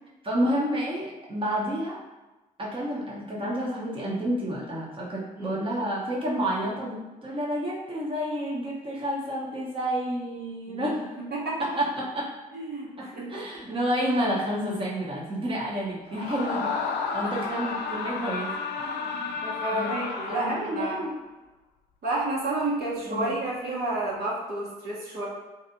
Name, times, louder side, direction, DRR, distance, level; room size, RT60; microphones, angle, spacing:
voice 1, 0.2-2.0 2.6-11.1 11.6-12.3 13.0-16.7 17.1-19.2 19.7-19.9 20.3-21.1 23.1-23.3, equal, 30° right, -5 dB, 0.9 m, -30 dB
voice 2, 10.7-11.7 12.5-13.3 17.2-17.4 19.1-21.1 22.0-25.2, right 2 dB, 55° right, -5 dB, 1.0 m, -31 dB
Screaming, 16.1-21.0, left 5 dB, 65° left, 0.5 m, -32 dB
3.1 x 2.8 x 2.6 m, 1.1 s
hypercardioid pair, 50°, 19 cm